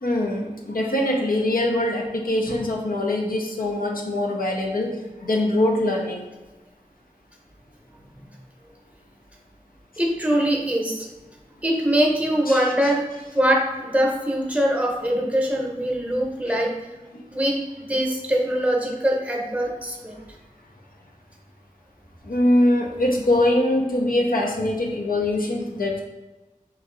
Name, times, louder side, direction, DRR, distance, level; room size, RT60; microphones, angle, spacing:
voice 1, 0.0-6.2 12.5-12.7 17.1-17.2 22.2-26.0, left 1 dB, 90° left, 0 dB, 0.6 m, -23 dB
voice 2, 10.0-11.1 11.6-13.0 13.3-16.7 17.3-20.2, equal, 10° right, 0 dB, 0.7 m, -23 dB
3.0 x 2.6 x 3.7 m, 1.1 s
wide cardioid pair, 40°, 14 cm